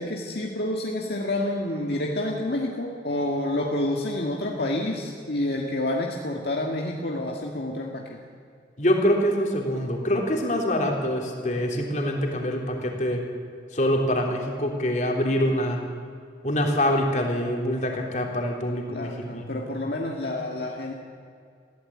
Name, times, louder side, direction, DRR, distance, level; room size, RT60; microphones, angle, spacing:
voice 1, 0.0-8.2 18.9-20.9, left 1 dB, 65° left, 0 dB, 1.9 m, -28 dB
voice 2, 8.8-13.2 13.7-15.8 16.4-19.6, equal, 45° left, 1 dB, 3.4 m, -25 dB
21.5 x 16.0 x 8.7 m, 2.3 s
head